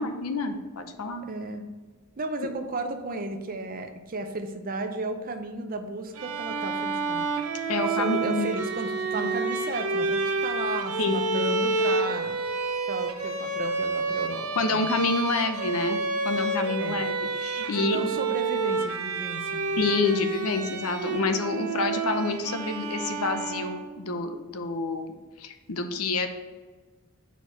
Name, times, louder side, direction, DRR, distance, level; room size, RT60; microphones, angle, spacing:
voice 1, 0.0-1.3 7.7-8.5 9.1-9.3 11.0-11.6 14.6-18.0 19.8-25.1 25.4-26.3, left 3 dB, 80° left, 7 dB, 0.7 m, -28 dB
voice 2, 1.2-1.6 2.2-7.3 7.8-12.4 12.9-14.9 16.8-17.1 17.7-19.7, right 2 dB, 40° right, 6 dB, 0.6 m, -34 dB
Bowed string instrument, 6.1-24.0, right 3 dB, 90° right, 0.8 m, -29 dB
4.7 x 4.5 x 5.6 m, 1.3 s
head